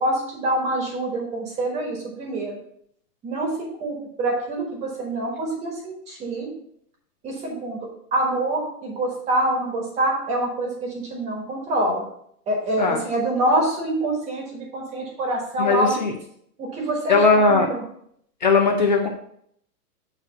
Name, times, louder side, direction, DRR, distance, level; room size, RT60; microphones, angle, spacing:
voice 1, 0.0-2.6 3.2-3.5 3.8-6.5 7.2-7.8 8.1-12.1 12.5-16.0 16.6-17.8, right 1 dB, 15° right, 0 dB, 1.2 m, -25 dB
voice 2, 15.6-16.1 17.1-17.7 18.4-19.1, left 3 dB, 30° left, 2 dB, 0.4 m, -18 dB
8.7 x 3.0 x 5.7 m, 0.69 s
hypercardioid pair, 165°, 46 cm